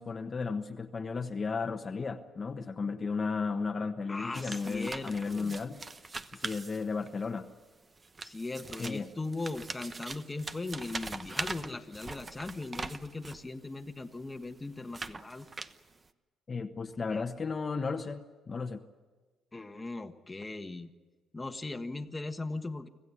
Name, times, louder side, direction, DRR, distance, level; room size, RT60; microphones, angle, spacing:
voice 1, 0.0-5.8 6.3-7.5 8.8-9.1 16.5-18.8, left 4 dB, 35° left, 5 dB, 1.2 m, -34 dB
voice 2, 4.1-5.6 8.2-15.5 17.1-17.2 19.5-20.9 21.3-22.9, left 2 dB, 20° left, 6 dB, 1.4 m, -39 dB
sound 1, 4.3-7.3 8.0-13.5 14.1-16.1, right 3 dB, 30° right, 1.0 m, -42 dB
25.5 x 15.5 x 9.8 m, 1.3 s
cardioid pair, 90°, 0 cm